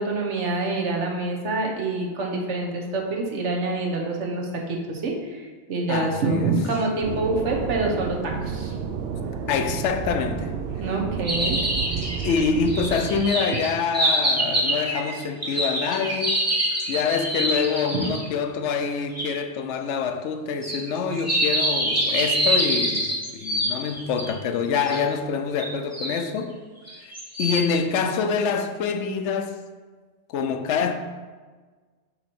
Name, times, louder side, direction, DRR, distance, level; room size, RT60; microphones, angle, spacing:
voice 1, 0.0-8.8 10.8-11.6 17.9-18.0, right 3 dB, 80° right, 1.3 m, -26 dB
voice 2, 5.9-6.6 9.5-10.6 11.5-11.7 12.2-16.4 16.9-26.6 27.4-29.6 30.3-30.9, left 6 dB, 80° left, 0.9 m, -26 dB
sound 1, 7.0-13.2, right 6 dB, 65° right, 0.7 m, -30 dB
sound 2, 11.3-18.3 19.2-19.3 20.6-24.3 24.9-25.0 25.6-26.2 26.9-27.7, right 1 dB, 15° right, 1.0 m, -25 dB
6.8 x 3.1 x 5.9 m
omnidirectional pair, 1.2 m